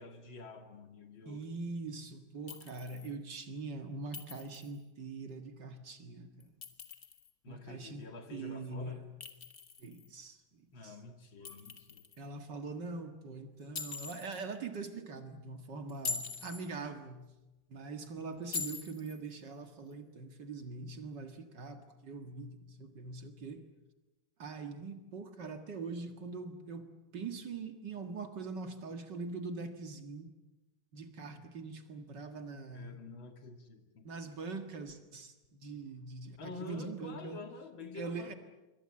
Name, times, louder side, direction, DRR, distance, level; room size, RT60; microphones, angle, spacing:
voice 1, 0.0-1.5 7.4-9.0 10.7-12.1 32.7-34.1 36.4-38.3, left 3 dB, 85° left, 5 dB, 3.3 m, -48 dB
voice 2, 1.3-6.5 7.5-9.2 9.8-11.0 12.2-17.3 17.7-23.7 24.4-26.9 27.1-30.3 30.9-33.0 34.0-37.4 37.9-38.3, right 3 dB, 65° right, 7 dB, 2.4 m, -43 dB
Chink clink, 2.5-3.1 4.1-4.8 6.4-7.3 9.2-10.1 11.4-12.2 13.7-14.4 15.9-16.7 18.5-19.2, left 5 dB, 50° left, 2.3 m, -42 dB
27.0 x 23.5 x 7.7 m, 1.1 s
omnidirectional pair, 2.1 m